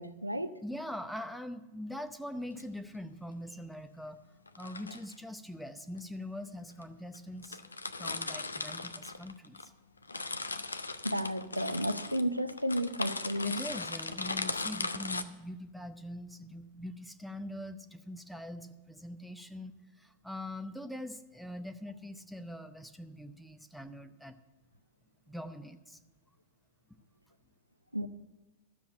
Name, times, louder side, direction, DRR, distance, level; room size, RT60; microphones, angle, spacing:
voice 1, 0.0-0.5 11.0-13.6 27.9-28.1, equal, 90° right, 10 dB, 0.5 m, -32 dB
voice 2, 0.6-4.2 4.6-7.7 8.0-9.7 13.4-24.4 25.3-26.0, left 1 dB, ahead, 8 dB, 0.7 m, -43 dB
sound 1, 2.4-2.6 4.5-5.1 6.0-6.1 6.8-6.9 7.1-7.2 7.4-9.7 10.0-15.2, left 3 dB, 80° left, 0.6 m, -38 dB
13.0 x 7.1 x 7.6 m, 1.1 s
figure-of-eight pair, 90°, 0 cm